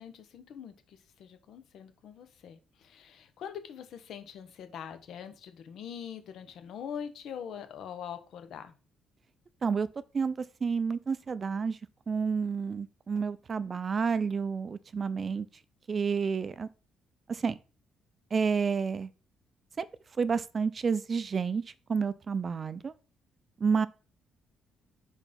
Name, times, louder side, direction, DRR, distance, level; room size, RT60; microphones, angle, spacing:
voice 1, 0.0-8.8, left 8 dB, 70° left, 1.1 m, -43 dB
voice 2, 10.6-11.8 12.1-15.5 15.9-16.7 17.3-17.6 18.3-19.1 19.8-19.9 20.2-21.6 21.9-22.9 23.6-23.9, right 5 dB, 35° right, 0.5 m, -29 dB
5.2 x 4.6 x 5.3 m
cardioid pair, 110°, 0 cm